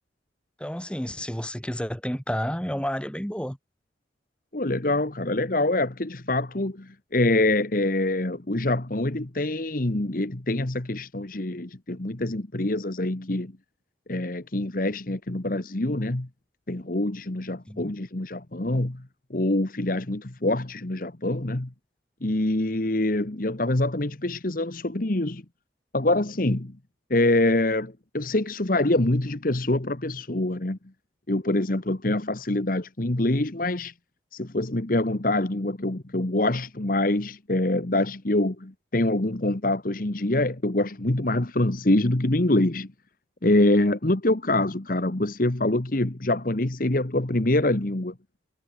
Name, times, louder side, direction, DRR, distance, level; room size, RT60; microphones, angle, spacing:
voice 1, 0.6-3.6 17.7-17.9, equal, 5° left, 4.2 m, -30 dB
voice 2, 4.5-13.5 14.1-16.3 16.7-19.0 19.3-21.7 22.2-25.4 25.9-26.7 27.1-30.8 31.3-33.9 34.3-42.9 43.4-48.1, left 1 dB, 45° left, 1.3 m, -25 dB
head